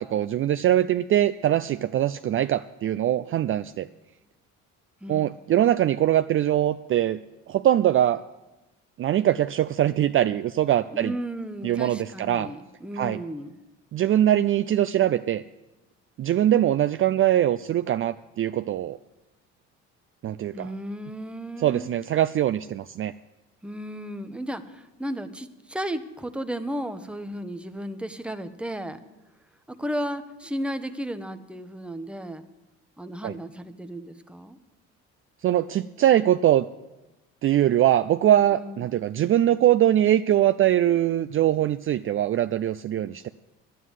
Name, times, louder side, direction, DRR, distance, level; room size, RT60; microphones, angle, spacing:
voice 1, 0.0-3.9 5.1-7.2 7.5-8.2 9.0-11.1 11.6-12.5 12.9-13.2 13.9-15.4 16.2-19.0 20.2-20.7 21.6-23.1 33.2-33.4 35.4-36.7 37.4-43.3, right 12 dB, 40° right, 12 dB, 0.4 m, -22 dB
voice 2, 10.9-13.5 20.5-21.9 23.6-29.0 29.7-32.5 33.0-34.6 38.5-38.8, equal, 5° right, 8 dB, 0.9 m, -34 dB
11.0 x 9.4 x 8.0 m, 1.0 s
supercardioid pair, 80°, 31 cm